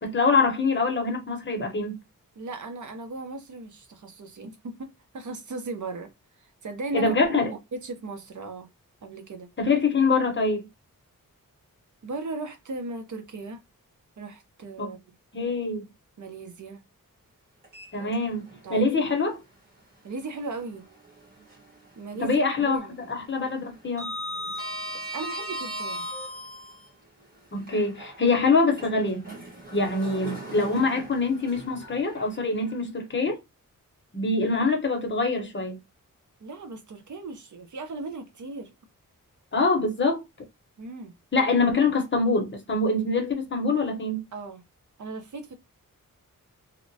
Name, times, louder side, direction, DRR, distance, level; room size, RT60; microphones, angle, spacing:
voice 1, 0.0-2.0 6.9-7.5 9.6-10.6 14.8-14.9 15.3-15.9 17.9-19.4 22.2-22.8 23.1-24.1 27.5-29.2 29.7-33.4 34.1-35.8 39.5-40.2 41.3-44.2, left 3 dB, 35° left, 0.7 m, -24 dB
voice 2, 2.4-6.1 6.6-8.7 9.0-9.5 12.0-13.6 14.2-15.0 16.2-16.8 18.0-19.1 20.0-20.8 22.0-23.2 25.1-26.1 36.4-38.7 40.8-41.1 44.3-44.6 45.0-45.6, right 3 dB, 60° right, 0.6 m, -37 dB
Sliding door, 17.6-18.6 19.0-19.1 20.8-21.9 22.1-22.5 22.8-26.9 27.5-32.7, equal, 25° right, 1.3 m, -38 dB
2.8 x 2.0 x 2.6 m
wide cardioid pair, 135°, 34 cm